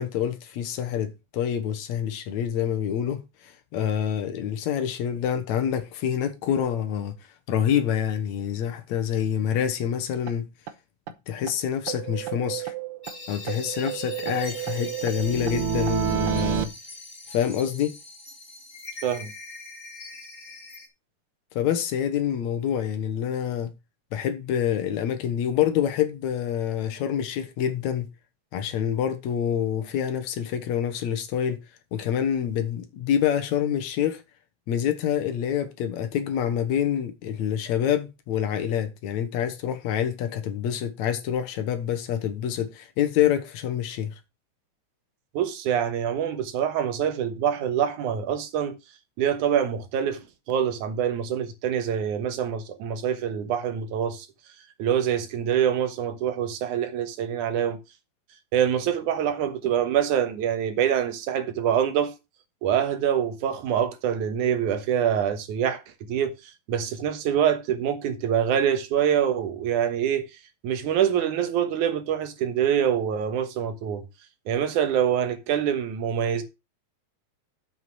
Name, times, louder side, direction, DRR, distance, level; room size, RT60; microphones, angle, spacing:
voice 1, 0.0-7.1 7.5-10.5 11.3-12.7 13.3-16.7 17.3-17.9 21.6-23.7 24.1-28.1 28.5-31.6 31.9-34.2 34.7-44.1, left 9 dB, 70° left, 2.4 m, -26 dB
sound 1, 10.3-10.4 10.7-10.8 11.1-11.2 11.5-11.6 11.9-13.2 13.5-16.7, right 11 dB, 70° right, 1.4 m, -29 dB
sound 2, 13.0-20.9, left 2 dB, 30° left, 0.9 m, -42 dB
voice 2, 45.3-48.8 49.2-54.3 54.8-57.8 58.5-62.1 62.6-65.8 66.1-70.3 70.6-74.0 74.5-76.4, right 9 dB, 85° right, 2.7 m, -25 dB
7.7 x 5.8 x 6.1 m
omnidirectional pair, 3.4 m